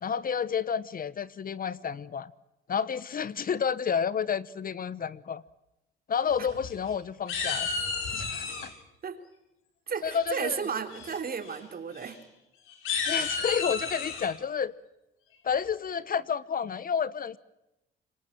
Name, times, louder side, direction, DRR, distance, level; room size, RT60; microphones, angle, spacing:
voice 1, 0.0-2.3 2.7-5.4 6.1-7.7 8.1-8.7 10.0-10.6 13.1-14.7 15.4-17.4, left 7 dB, 45° left, 1.0 m, -30 dB
sound 1, 6.3-6.9 7.3-8.7 10.1-10.5 10.9-11.2 11.4-11.6 11.9-12.1 12.7-14.3, left 5 dB, 80° left, 6.5 m, -32 dB
voice 2, 9.9-12.2, right 6 dB, 45° right, 3.5 m, -33 dB
26.0 x 23.5 x 7.6 m
supercardioid pair, 70°, 21 cm